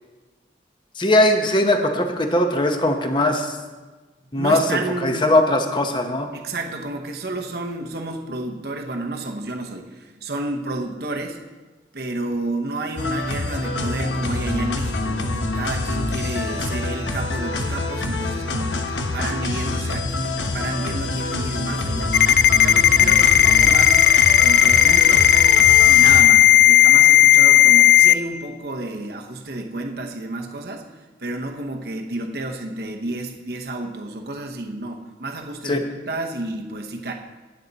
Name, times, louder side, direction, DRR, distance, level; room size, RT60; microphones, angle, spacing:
voice 1, 0.9-3.6 4.3-6.3 35.6-35.8, left 1 dB, 25° left, 5 dB, 1.0 m, -20 dB
voice 2, 4.3-5.3 6.3-11.4 11.9-22.2 22.5-24.0 24.4-25.3 25.8-30.9 31.2-37.1, right 2 dB, 60° right, 2 dB, 0.9 m, -31 dB
sound 1, 13.0-26.2, left 2 dB, 85° left, 1.1 m, -26 dB
Ringtone, 22.1-28.1, left 11 dB, 65° left, 0.3 m, -13 dB
18.5 x 7.3 x 4.1 m, 1.3 s
head